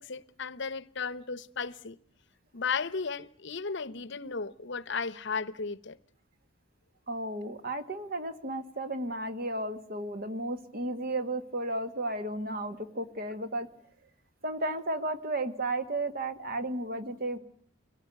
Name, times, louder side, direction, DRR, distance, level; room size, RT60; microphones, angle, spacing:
voice 1, 0.0-2.0 2.5-6.0, left 5 dB, 55° left, 0.9 m, -35 dB
voice 2, 7.1-13.7 14.4-17.4, right 2 dB, 45° right, 1.8 m, -33 dB
24.5 x 18.0 x 9.4 m
head